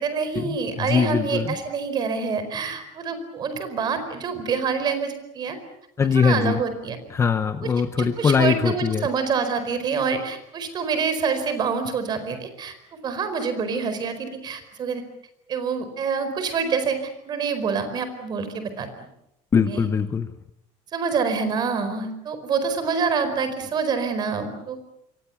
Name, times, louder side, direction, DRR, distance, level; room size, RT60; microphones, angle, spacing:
voice 1, 0.0-5.6 6.1-7.0 8.0-12.7 13.0-15.0 15.5-18.9 19.7-19.9 20.9-24.8, right 5 dB, 30° right, 10 dB, 4.6 m, -26 dB
voice 2, 0.9-1.5 6.0-6.6 7.1-9.1 19.5-20.3, left 6 dB, 20° left, 10 dB, 1.0 m, -21 dB
28.5 x 23.5 x 7.2 m, 0.81 s
cardioid pair, 165°, 13 cm